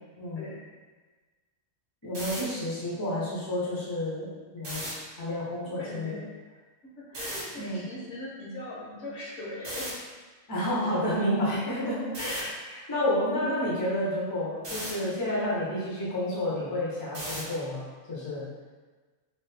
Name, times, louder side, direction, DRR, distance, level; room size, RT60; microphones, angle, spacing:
voice 1, 2.0-6.2 7.6-7.8 10.5-17.8 18.1-18.4, left 1 dB, 20° left, -7 dB, 0.6 m, -30 dB
sound 1, 2.0-2.4 4.6-4.9 7.1-7.4 9.6-9.9 12.1-12.4 14.6-14.9 17.1-17.5, right 1 dB, 55° right, 1.1 m, -36 dB
voice 2, 5.6-6.6 7.0-10.0, left 1 dB, 65° left, -6 dB, 1.2 m, -40 dB
3.0 x 2.5 x 3.3 m, 1.3 s
omnidirectional pair, 1.4 m